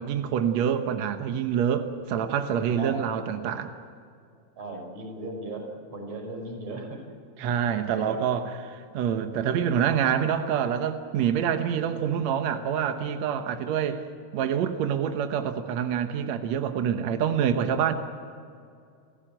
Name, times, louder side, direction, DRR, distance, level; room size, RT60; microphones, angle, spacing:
voice 1, 0.0-3.7 7.4-14.0 14.3-17.9, right 8 dB, 80° right, 7 dB, 1.6 m, -26 dB
voice 2, 4.6-5.6 5.9-7.0 7.4-7.5 7.9-8.2, right 2 dB, 40° right, 3 dB, 6.6 m, -37 dB
29.5 x 15.0 x 9.0 m, 2.3 s
omnidirectional pair, 4.7 m